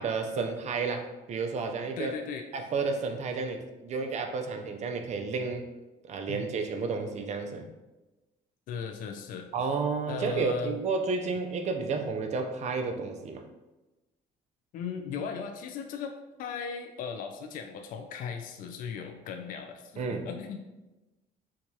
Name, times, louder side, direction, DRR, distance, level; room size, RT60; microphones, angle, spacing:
voice 1, 0.0-2.1 2.5-5.6 6.0-7.7 9.5-13.4 20.0-20.3, right 4 dB, 40° right, 4 dB, 0.5 m, -31 dB
voice 2, 2.0-2.4 6.3-6.4 8.7-9.5 10.1-10.8 14.7-16.1 16.4-20.6, left 6 dB, 55° left, 5 dB, 0.4 m, -37 dB
4.5 x 2.3 x 2.7 m, 1.1 s
cardioid pair, 110°, 17 cm